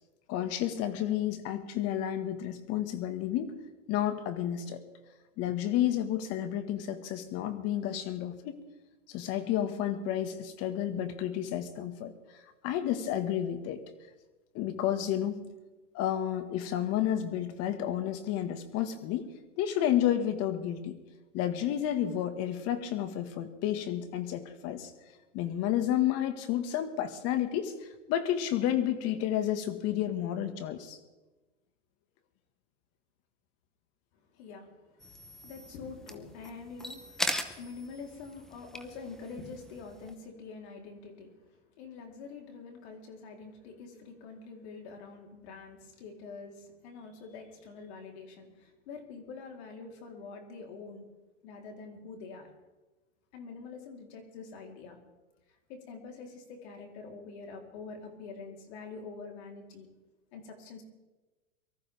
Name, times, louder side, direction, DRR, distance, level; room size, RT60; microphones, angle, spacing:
voice 1, 0.3-3.5 3.9-4.8 5.4-8.6 9.1-13.8 14.5-15.4 15.9-19.3 19.6-21.0 21.3-24.9 25.3-31.0, left 11 dB, 40° left, 9 dB, 1.8 m, -31 dB
voice 2, 34.3-41.4 41.7-51.1 51.4-52.5 53.3-55.0 55.5-59.9 60.3-60.8, left 4 dB, 60° left, 2 dB, 3.9 m, -46 dB
sound 1, 35.0-40.1, equal, ahead, 0.8 m, -40 dB
23.5 x 14.0 x 3.6 m, 1.2 s
hypercardioid pair, 120°, 38 cm